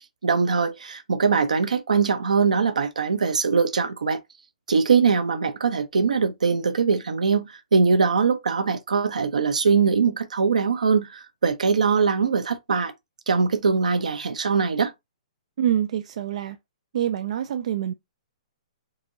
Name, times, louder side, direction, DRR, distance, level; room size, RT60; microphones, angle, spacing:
voice 1, 0.2-4.2 4.7-12.9 13.3-14.9, right 5 dB, 80° right, 0.9 m, -22 dB
voice 2, 15.6-16.6 16.9-17.9, right 10 dB, 60° right, 0.4 m, -25 dB
4.6 x 3.7 x 2.7 m
hypercardioid pair, 125°, 4 cm